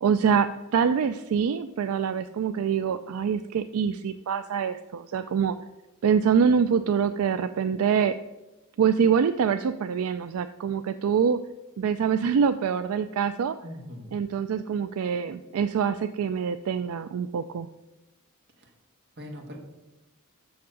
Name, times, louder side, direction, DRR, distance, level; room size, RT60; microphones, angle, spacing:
voice 1, 0.0-5.5 6.0-8.2 8.8-11.4 11.8-13.6 14.1-17.7, right 7 dB, 75° right, 10 dB, 0.3 m, -25 dB
voice 2, 13.6-14.2 18.6-18.7 19.2-19.6, equal, 50° right, 1 dB, 1.7 m, -41 dB
7.1 x 6.2 x 6.2 m, 1.0 s
head